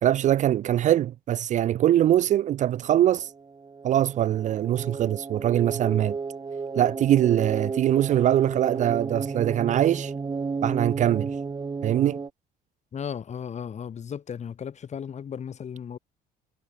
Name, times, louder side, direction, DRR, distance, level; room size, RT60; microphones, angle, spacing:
voice 1, 0.0-3.3 3.8-6.2 6.7-10.1 10.6-11.3 11.8-12.2, right 12 dB, 45° right, 0.4 m, -22 dB
sound 1, 2.9-12.3, right 4 dB, 25° right, 2.7 m, -33 dB
voice 2, 12.9-16.0, left 7 dB, 40° left, 3.7 m, -35 dB
cardioid pair, 110°, 17 cm